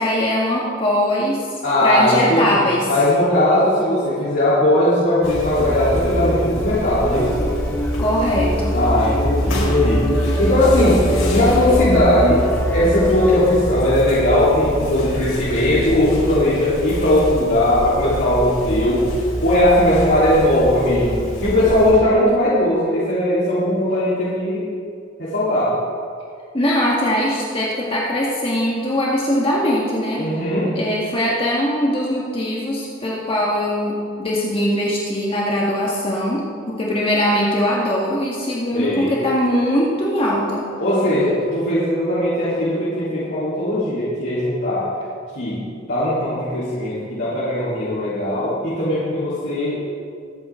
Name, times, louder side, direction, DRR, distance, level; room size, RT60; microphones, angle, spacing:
voice 1, 0.0-2.9 8.0-8.8 26.5-30.2 30.8-40.7, equal, 30° left, -5 dB, 1.8 m, -21 dB
voice 2, 1.6-2.6 2.9-7.4 8.7-12.4 12.7-19.1 19.4-24.7 25.2-25.7 30.2-30.7 38.7-39.1 40.8-44.9 45.3-45.6 45.9-49.8, left 1 dB, 60° left, -11 dB, 3.8 m, -18 dB
sound 1, 5.2-21.9, equal, 85° left, 4.3 m, -28 dB
sound 2, 5.6-13.4, equal, 10° left, 1.9 m, -23 dB
24.5 x 9.4 x 3.8 m, 2.3 s
head